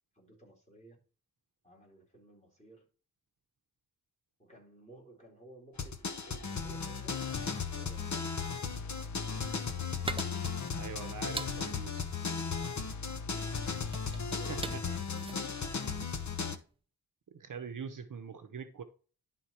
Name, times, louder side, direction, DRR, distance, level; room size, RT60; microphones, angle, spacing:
voice 1, 0.1-1.0 1.6-2.8 4.4-7.2 7.6-10.2 14.3-16.0, right 2 dB, 15° left, -2 dB, 4.3 m, -57 dB
sound 1, 5.8-16.6, left 5 dB, 45° left, 1.0 m, -36 dB
sound 2, 9.5-16.6, right 3 dB, 15° right, 0.4 m, -44 dB
voice 2, 10.7-12.0 14.1-14.2 14.5-14.8 17.3-18.8, right 6 dB, 55° right, 8 dB, 0.9 m, -43 dB
11.0 x 3.9 x 4.4 m, 0.38 s
wide cardioid pair, 110°, 39 cm